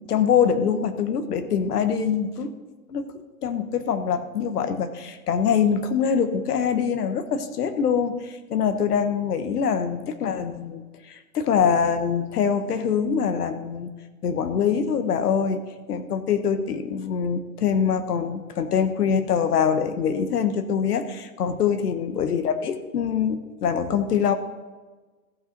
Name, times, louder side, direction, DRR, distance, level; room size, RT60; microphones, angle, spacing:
voice 1, 0.1-2.5 2.9-3.1 3.4-13.9 14.2-15.6 15.9-24.3, left 7 dB, 80° left, 10 dB, 1.2 m, -24 dB
15.0 x 5.6 x 5.1 m, 1.3 s
hypercardioid pair, 175°, 45 cm